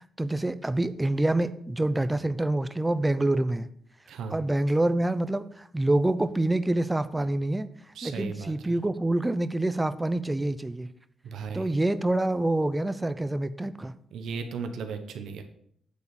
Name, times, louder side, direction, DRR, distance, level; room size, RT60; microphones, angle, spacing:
voice 1, 0.2-3.7 4.3-7.7 8.0-10.9 11.5-13.9, right 1 dB, 15° right, 13 dB, 0.6 m, -26 dB
voice 2, 7.9-8.8 11.2-11.7 14.1-15.4, right 5 dB, 75° right, 7 dB, 1.1 m, -36 dB
8.4 x 4.0 x 7.0 m, 0.68 s
cardioid pair, 75°, 0 cm